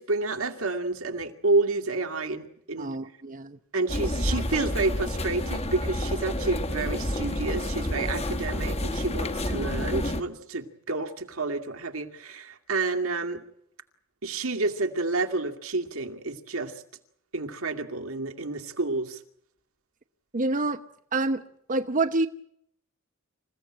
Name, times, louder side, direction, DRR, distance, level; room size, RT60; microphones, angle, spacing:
voice 1, 0.0-2.9 3.7-13.4 14.2-16.7 17.3-19.2, right 3 dB, 75° right, 2.4 m, -29 dB
voice 2, 2.8-3.6 20.3-20.8 21.1-21.4 21.7-22.3, right 2 dB, 40° right, 0.9 m, -26 dB
sound 1, 3.9-10.2, left 1 dB, 30° left, 1.6 m, -29 dB
28.0 x 16.0 x 8.9 m
head